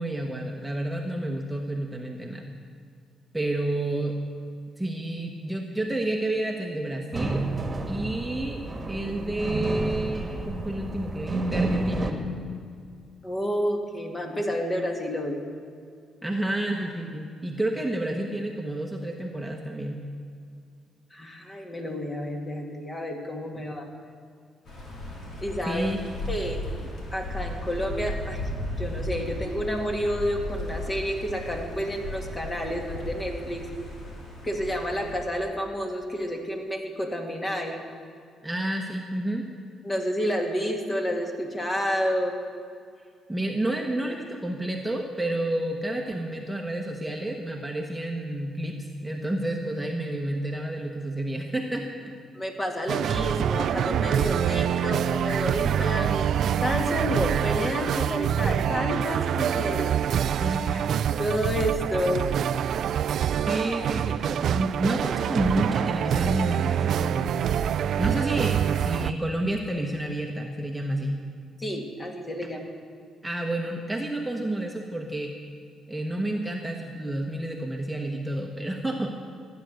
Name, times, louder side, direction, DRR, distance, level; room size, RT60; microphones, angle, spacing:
voice 1, 0.0-2.5 3.3-4.2 4.8-7.4 7.9-8.6 8.9-12.2 16.2-20.0 25.7-26.0 38.4-39.5 43.3-52.1 60.4-60.9 63.4-67.3 68.0-71.3 73.2-75.3 75.9-79.1, right 1 dB, 5° right, 1 dB, 1.2 m, -30 dB
sound 1, 7.1-12.1, right 2 dB, 25° right, 1.6 m, -30 dB
voice 2, 13.2-15.4 21.1-23.9 25.4-25.9 26.3-26.6 27.1-28.5 28.8-33.6 34.4-37.8 39.8-42.4 52.3-56.3 56.6-60.9 61.2-62.3 71.6-72.6, equal, 25° left, 2 dB, 2.1 m, -30 dB
sound 2, 24.6-35.1, left 1 dB, 60° left, 3.4 m, -35 dB
sound 3, 52.9-69.1, right 9 dB, 70° right, 0.3 m, -26 dB
14.5 x 9.3 x 6.5 m, 2.3 s
cardioid pair, 90°, 0 cm